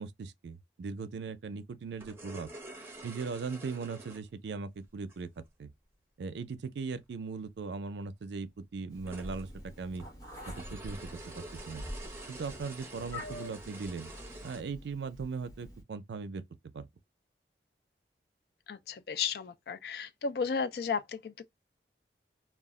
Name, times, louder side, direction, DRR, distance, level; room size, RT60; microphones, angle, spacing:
voice 1, 0.0-2.5 3.0-5.3 5.6-5.7 6.2-10.0 10.5-11.0 11.4-11.9 12.3-14.1 14.4-16.4 16.7-16.9, right 4 dB, 80° right, 0.4 m, -39 dB
sound 1, 1.9-5.3 7.1-7.2 7.4-7.5 8.3-14.6, right 2 dB, 15° right, 0.7 m, -48 dB
Meow, 8.9-15.8, left 1 dB, 20° left, 0.9 m, -46 dB
voice 2, 18.7-21.4, left 5 dB, 60° left, 0.3 m, -34 dB
2.3 x 2.0 x 3.5 m
head